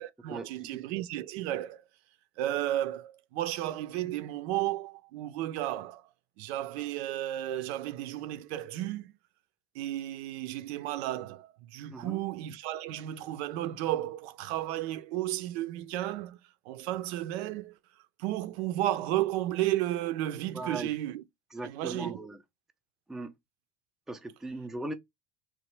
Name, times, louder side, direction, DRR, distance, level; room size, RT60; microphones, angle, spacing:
voice 1, 0.0-1.8 2.4-6.0 6.4-9.1 9.7-16.4 16.7-17.7 18.2-21.2 21.6-22.2, right 14 dB, 75° right, 0.5 m, -33 dB
voice 2, 20.5-20.9 21.5-22.4 23.1-23.3 24.1-24.9, right 2 dB, ahead, 0.4 m, -38 dB
2.9 x 2.2 x 3.1 m
hypercardioid pair, 85°, 32 cm